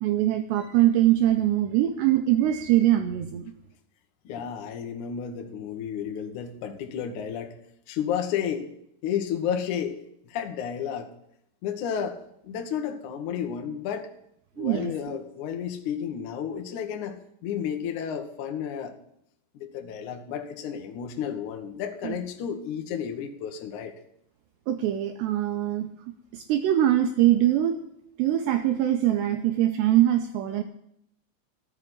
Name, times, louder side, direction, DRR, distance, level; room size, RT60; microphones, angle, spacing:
voice 1, 0.0-3.5 14.6-15.2 22.0-22.2 24.7-25.9 26.3-27.8 28.2-30.6, right 12 dB, 90° right, 7 dB, 2.5 m, -23 dB
voice 2, 4.2-7.6 7.9-8.7 9.0-10.0 10.2-11.1 11.6-12.2 12.4-14.1 14.6-18.9 19.5-23.9, left 8 dB, 75° left, 4 dB, 1.8 m, -32 dB
13.0 x 6.4 x 9.9 m, 0.74 s
omnidirectional pair, 5.7 m